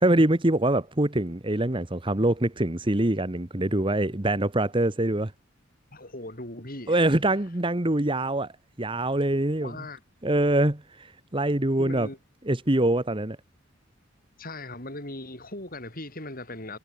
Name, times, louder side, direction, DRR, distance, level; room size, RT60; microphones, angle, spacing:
voice 1, 0.0-5.3 6.9-8.5 8.8-9.7 10.2-11.1 11.3-12.1 12.5-13.4, right 1 dB, 25° right, 1.3 m, -24 dB
voice 2, 5.9-7.2 9.6-10.0 11.8-12.2 14.4-16.8, left 2 dB, 45° left, 7.8 m, -39 dB
head